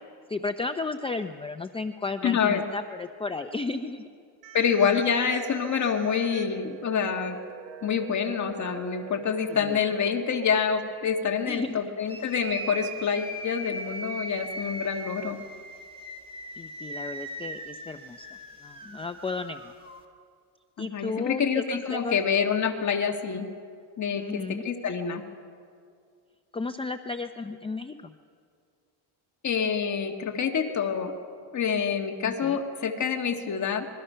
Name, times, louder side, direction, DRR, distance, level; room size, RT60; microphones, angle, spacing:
voice 1, 0.3-4.1 9.5-9.8 11.5-11.8 16.6-18.3 18.6-19.7 20.8-22.2 24.2-24.7 26.5-28.1 32.3-32.6, left 3 dB, 10° left, 8 dB, 0.5 m, -34 dB
voice 2, 2.2-2.6 4.5-7.4 7.8-15.4 20.8-23.5 24.0-25.2 29.4-31.1 31.5-33.9, left 6 dB, 35° left, 4 dB, 1.7 m, -27 dB
sound 1, 4.4-10.4, right 12 dB, 65° right, 1.8 m, -45 dB
sound 2, 12.1-20.0, right 1 dB, 10° right, 2.0 m, -39 dB
26.0 x 22.0 x 5.6 m, 2.2 s
cardioid pair, 120°, 47 cm